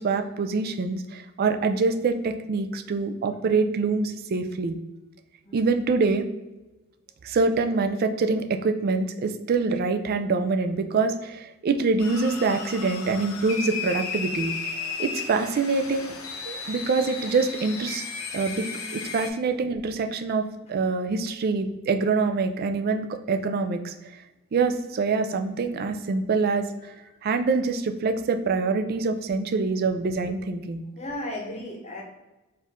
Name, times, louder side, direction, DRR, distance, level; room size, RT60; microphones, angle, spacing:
voice 1, 0.0-4.8 5.5-6.3 7.2-14.5 15.0-16.1 16.5-18.1 18.3-18.7 18.9-20.4 20.7-23.9 24.5-26.7 27.2-30.8, right 4 dB, 45° right, 7 dB, 0.3 m, -25 dB
sound 1, 12.0-19.3, left 5 dB, 70° left, 0.7 m, -34 dB
voice 2, 31.0-32.0, left 1 dB, 30° left, 0 dB, 0.8 m, -36 dB
4.4 x 2.5 x 3.4 m, 1.0 s
head